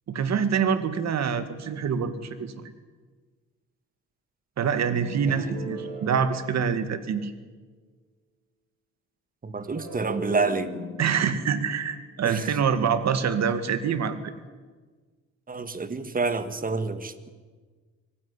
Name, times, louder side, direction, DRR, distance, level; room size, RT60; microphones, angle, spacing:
voice 1, 0.1-2.7 4.6-7.3 11.0-14.3, right 7 dB, 60° right, 11 dB, 2.2 m, -26 dB
sound 1, 4.8-7.2 9.6-12.9, right 1 dB, 90° right, 6.2 m, -40 dB
voice 2, 9.4-10.7 12.2-12.5 15.5-17.3, right 4 dB, 30° right, 11 dB, 1.9 m, -28 dB
24.5 x 15.5 x 10.0 m, 1.4 s
cardioid pair, 90°, 30 cm